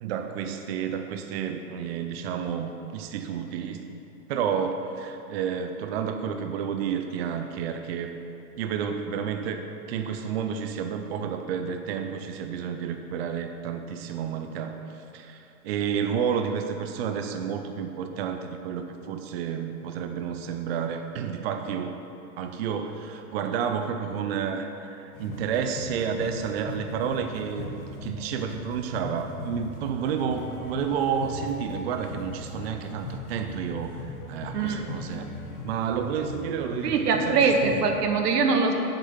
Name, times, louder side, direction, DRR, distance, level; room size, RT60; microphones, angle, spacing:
voice 1, 0.0-3.8 4.3-8.1 8.6-21.9 22.4-34.0 34.3-35.2 35.6-37.5, right 7 dB, 45° right, 6 dB, 0.6 m, -30 dB
sound 1, 25.1-38.0, left 3 dB, 65° left, 1.7 m, -39 dB
voice 2, 34.5-34.9 36.8-38.7, right 4 dB, 85° right, 4 dB, 1.5 m, -22 dB
7.8 x 6.8 x 7.2 m, 2.9 s
supercardioid pair, 160°, 46 cm